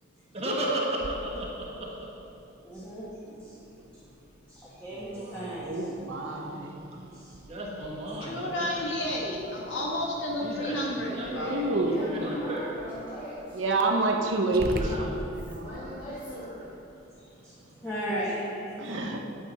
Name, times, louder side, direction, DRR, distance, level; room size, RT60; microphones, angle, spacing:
voice 1, 0.3-1.9 4.9-5.6 7.5-8.8 10.4-12.7 14.8-15.2, right 1 dB, 30° right, -4 dB, 1.4 m, -35 dB
Growling, 1.0-15.8, right 1 dB, 50° right, 0.7 m, -44 dB
voice 2, 2.6-3.0 3.4-3.5 4.5-5.8 7.1-7.4 17.2-17.6 17.8-18.8, equal, 10° left, -10 dB, 1.5 m, -36 dB
voice 3, 5.5-6.8 11.3-12.3 13.5-15.7 18.8-19.2, right 2 dB, 85° right, 2 dB, 1.0 m, -28 dB
voice 4, 8.2-11.6 17.5-17.6, left 1 dB, 85° left, -2 dB, 1.8 m, -31 dB
voice 5, 11.8-13.6 15.5-16.7, equal, 40° left, -10 dB, 2.1 m, -39 dB
9.7 x 8.7 x 4.2 m, 2.8 s
head